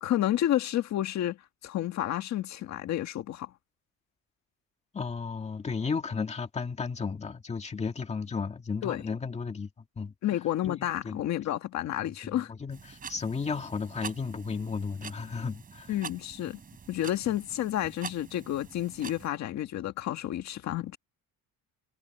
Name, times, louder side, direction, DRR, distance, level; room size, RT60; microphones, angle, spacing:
voice 1, 0.0-3.5 8.8-9.0 10.2-12.5 15.9-16.6 16.9-21.0, left 12 dB, 50° left, 1.7 m, -30 dB
voice 2, 4.9-9.7 10.0-10.1 10.6-11.2 12.1-15.9, left 5 dB, 20° left, 2.0 m, -34 dB
sound 1, 12.7-19.3, right 6 dB, 25° right, 5.1 m, -45 dB
cardioid pair, 180°, 34 cm